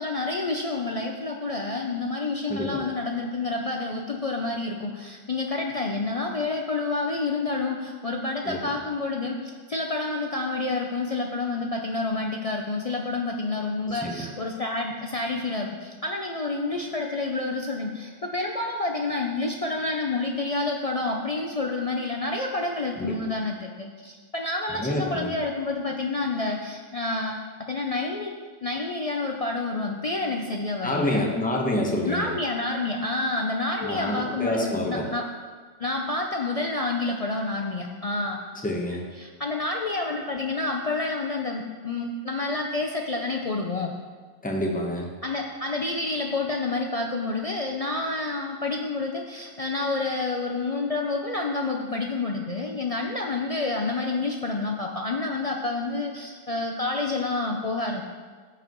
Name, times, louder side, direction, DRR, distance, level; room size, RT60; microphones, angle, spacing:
voice 1, 0.0-28.3 28.6-31.2 32.0-35.3 35.8-38.4 39.2-43.9 45.2-58.0, left 3 dB, 60° left, 1 dB, 0.3 m, -29 dB
voice 2, 2.5-2.8 8.4-8.7 13.9-14.2 23.0-23.2 24.8-25.3 30.8-32.3 33.8-35.1 38.6-39.0 44.4-45.1, left 1 dB, 5° left, 0 dB, 0.9 m, -27 dB
14.5 x 5.0 x 3.0 m, 1.5 s
omnidirectional pair, 1.4 m